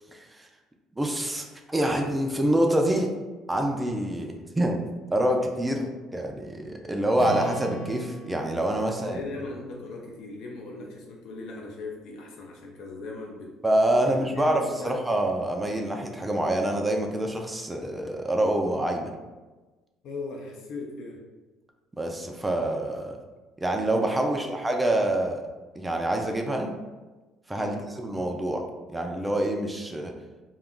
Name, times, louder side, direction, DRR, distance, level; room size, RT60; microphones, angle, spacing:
voice 1, 1.0-3.1 3.5-4.8 5.1-9.2 13.6-19.1 22.0-23.2 23.6-25.4 25.8-26.7 27.5-28.6 28.9-30.1, right 1 dB, 10° right, 2 dB, 0.3 m, -26 dB
Strum, 7.2-11.4, right 2 dB, 40° left, 1.1 m, -41 dB
voice 2, 8.9-13.5 14.0-15.0 20.0-21.2 24.1-24.6 27.6-27.8, left 3 dB, 65° left, -1 dB, 0.5 m, -39 dB
2.4 x 2.2 x 3.6 m, 1.2 s
cardioid pair, 115°, 0 cm